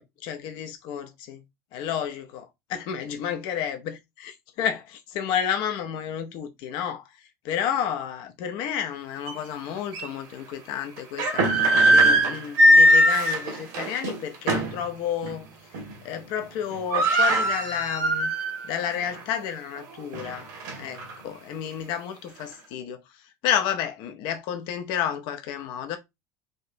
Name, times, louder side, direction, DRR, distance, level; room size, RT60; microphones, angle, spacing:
voice 1, 0.0-1.4 1.7-7.0 7.4-15.5 16.0-18.3 18.6-20.5 20.8-23.0 23.4-26.0, left 9 dB, 55° left, 0.9 m, -31 dB
sound 1, 9.3-9.4 9.9-10.1 11.0-14.8 15.2-15.4 15.7-16.2 16.4-16.5 16.7-18.7 19.1-19.2 19.8-21.1, right 1 dB, 65° right, 1.7 m, -20 dB
5.2 x 2.8 x 2.7 m
hypercardioid pair, 75°, 9 cm